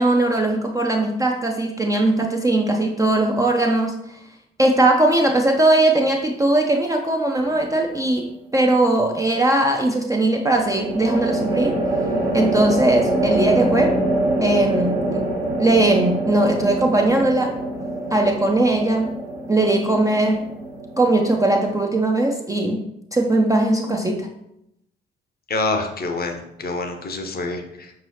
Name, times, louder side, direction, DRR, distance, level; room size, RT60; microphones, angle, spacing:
voice 1, 0.0-4.2 4.6-11.8 12.3-14.0 14.4-15.3 15.6-17.6 18.1-19.1 19.5-20.5 21.0-22.8 23.1-24.3, right 2 dB, 10° right, 1 dB, 0.4 m, -19 dB
sound 1, 7.4-7.9 10.5-21.9, right 1 dB, 70° right, 1.2 m, -25 dB
voice 2, 25.5-27.9, left 3 dB, 30° left, 5 dB, 0.6 m, -26 dB
5.3 x 2.8 x 3.1 m, 0.82 s
figure-of-eight pair, 45°, 30 cm